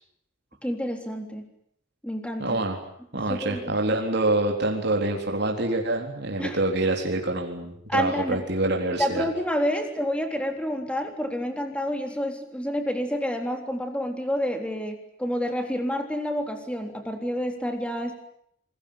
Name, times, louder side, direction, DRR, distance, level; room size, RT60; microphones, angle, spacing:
voice 1, 0.6-1.4 2.0-2.6 3.3-3.7 6.4-6.6 7.9-8.4 9.0-18.1, equal, 5° left, 5 dB, 3.6 m, -29 dB
voice 2, 2.4-2.8 3.1-9.3, right 2 dB, 55° right, 2 dB, 3.9 m, -26 dB
27.5 x 21.5 x 8.8 m, 0.69 s
head